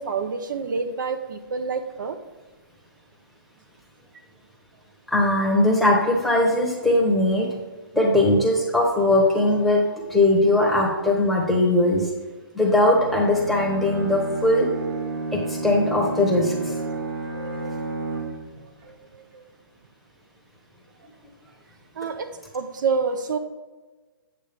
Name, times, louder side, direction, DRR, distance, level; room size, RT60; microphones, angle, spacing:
voice 1, 0.0-2.2 16.9-17.1 17.3-17.7 18.1-18.2 18.9-19.4 22.0-22.3 22.5-23.4, right 5 dB, 55° right, 8 dB, 0.7 m, -28 dB
voice 2, 5.1-7.5 7.9-12.1 12.5-14.7 15.3-16.7, left 1 dB, ahead, -2 dB, 1.0 m, -20 dB
Bowed string instrument, 12.6-18.6, right 2 dB, 85° right, 2.5 m, -31 dB
8.4 x 6.4 x 3.4 m, 1.3 s
hypercardioid pair, 160°, 12 cm